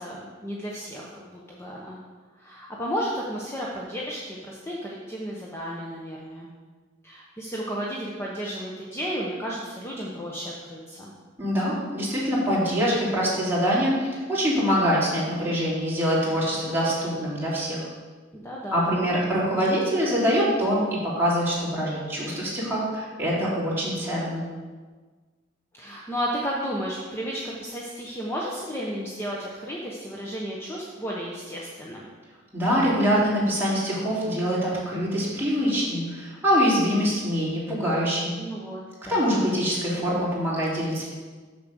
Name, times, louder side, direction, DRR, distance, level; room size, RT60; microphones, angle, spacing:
voice 1, 0.0-2.0 2.4-6.5 7.0-11.1 18.3-18.9 25.7-32.1 38.4-39.3, equal, 15° left, -4 dB, 0.9 m, -33 dB
voice 2, 11.4-17.9 18.7-24.4 32.5-38.3 39.1-41.1, equal, 10° right, -8 dB, 3.0 m, -24 dB
7.1 x 6.5 x 6.5 m, 1.4 s
head